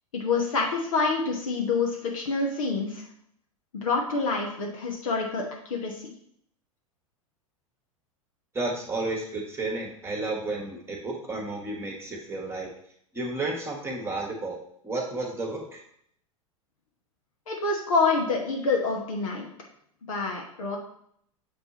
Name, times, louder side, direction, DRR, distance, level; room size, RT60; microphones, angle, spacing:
voice 1, 0.1-3.0 3.7-6.0 17.5-19.5 20.0-20.8, left 4 dB, 65° left, -1 dB, 1.2 m, -27 dB
voice 2, 8.5-12.7 13.1-14.6 14.8-15.8, right 2 dB, 15° right, 0 dB, 1.4 m, -32 dB
7.5 x 3.5 x 4.2 m, 0.67 s
figure-of-eight pair, 90°, 18 cm